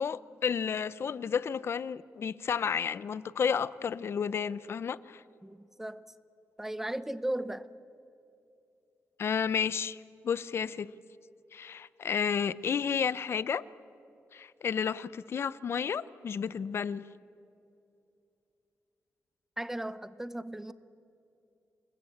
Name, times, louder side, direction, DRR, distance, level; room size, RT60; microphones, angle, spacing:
voice 1, 0.0-5.2 9.2-10.9 11.5-13.6 14.3-17.0, left 7 dB, 50° left, 18 dB, 0.6 m, -32 dB
voice 2, 5.4-6.0 6.6-7.7 19.6-20.7, right 1 dB, 5° right, 15 dB, 0.8 m, -36 dB
28.5 x 20.5 x 8.6 m, 2.7 s
wide cardioid pair, 155°, 5 cm